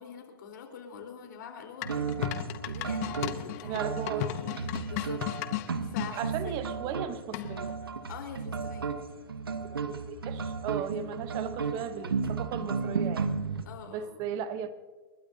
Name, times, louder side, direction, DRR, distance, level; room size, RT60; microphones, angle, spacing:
voice 1, 0.0-2.1 2.6-5.2 5.8-6.6 8.1-8.9 13.6-14.3, left 7 dB, 60° left, 4 dB, 4.2 m, -45 dB
sound 1, 1.8-6.1 7.3-7.7, left 13 dB, 40° left, 1.1 m, -35 dB
sound 2, 1.8-13.6, right 5 dB, 85° right, 1.3 m, -34 dB
voice 2, 3.7-4.3 6.2-7.8 9.8-13.3 13.9-14.7, right 8 dB, 35° right, 13 dB, 1.0 m, -36 dB
29.5 x 12.5 x 2.8 m, 1.5 s
hypercardioid pair, 125°, 12 cm